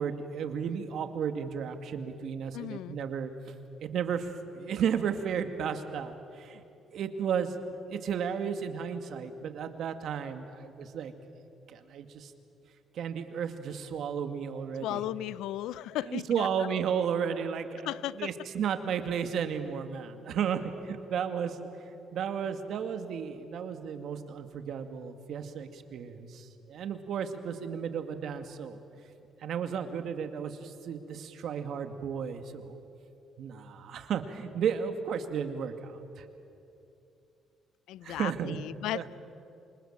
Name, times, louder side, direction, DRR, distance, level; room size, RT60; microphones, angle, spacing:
voice 1, 0.0-3.5 3.8-6.6 6.9-7.6 7.9-11.1 11.7-12.3 12.9-15.0 16.0-17.9 18.2-21.7 22.1-28.8 29.4-32.8 33.4-35.9 36.2-36.3 38.0-38.6 38.9-39.0, right 7 dB, 70° right, 7 dB, 2.2 m, -33 dB
voice 2, 2.5-3.0 14.8-16.7 17.8-18.3 37.9-39.2, left 14 dB, 85° left, 20 dB, 0.5 m, -36 dB
28.0 x 25.5 x 7.4 m, 2.8 s
cardioid pair, 85°, 0 cm